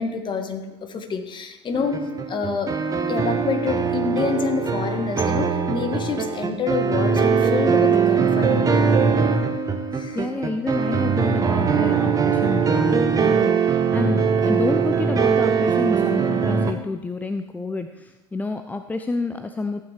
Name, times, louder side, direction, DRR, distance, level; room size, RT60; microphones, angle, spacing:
voice 1, 0.0-2.0 2.3-2.7 3.1-8.7 9.9-10.2, left 5 dB, 30° left, 6 dB, 1.5 m, -27 dB
sound 1, 1.7-16.7, right 6 dB, 20° right, 1.1 m, -21 dB
voice 2, 10.1-19.8, left 3 dB, 10° left, 8 dB, 0.5 m, -29 dB
14.5 x 8.9 x 3.4 m, 1.0 s
figure-of-eight pair, 70°, 16 cm